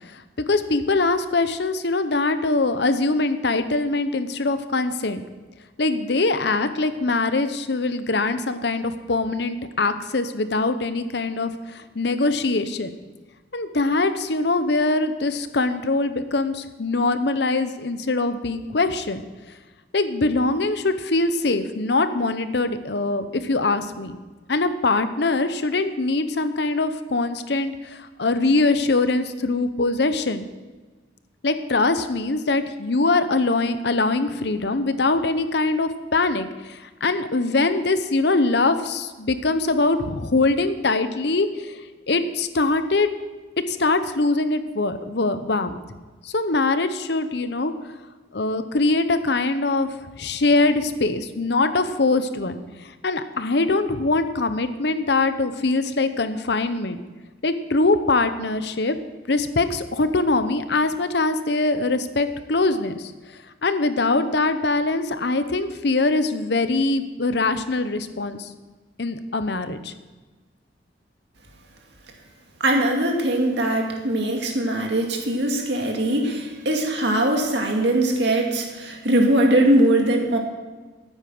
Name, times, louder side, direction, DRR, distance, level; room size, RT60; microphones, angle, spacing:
voice 1, 0.5-5.2 5.8-12.9 13.5-19.2 19.9-24.2 24.5-30.4 31.4-41.8 42.1-43.1 43.7-45.8 46.2-47.9 48.3-52.6 53.0-57.0 57.4-59.0 59.3-63.1 63.6-68.5 69.0-69.9, left 3 dB, 60° left, 11 dB, 0.8 m, -23 dB
voice 2, 72.6-80.4, right 1 dB, 65° right, 2 dB, 2.3 m, -21 dB
14.0 x 8.9 x 6.0 m, 1.3 s
head